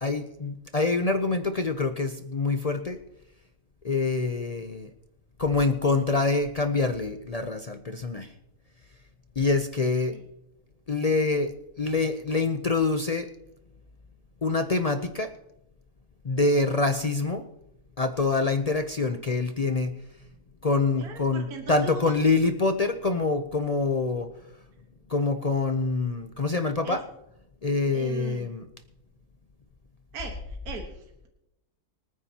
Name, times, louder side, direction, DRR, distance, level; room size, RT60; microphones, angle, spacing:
voice 1, 0.0-3.0 3.8-4.9 5.4-8.3 9.4-10.1 10.9-11.5 11.8-13.3 14.4-15.3 16.2-17.4 18.0-19.9 20.6-24.3 25.1-27.0 27.6-28.7, left 3 dB, 70° left, 7 dB, 0.3 m, -25 dB
voice 2, 21.0-22.2 26.8-27.0 27.9-28.5 30.1-31.3, right 3 dB, 65° right, 3 dB, 1.9 m, -40 dB
25.0 x 9.6 x 2.9 m, 0.87 s
omnidirectional pair, 1.7 m